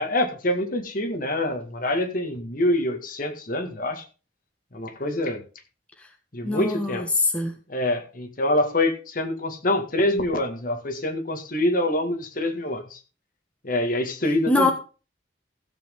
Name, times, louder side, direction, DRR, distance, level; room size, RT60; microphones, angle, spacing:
voice 1, 0.0-4.0 4.7-5.4 6.3-7.1 7.7-13.0 13.6-14.7, left 1 dB, 50° left, 4 dB, 2.0 m, -25 dB
voice 2, 6.4-7.6 14.5-14.7, left 2 dB, 5° left, 3 dB, 1.4 m, -23 dB
16.0 x 7.8 x 3.8 m, 0.34 s
head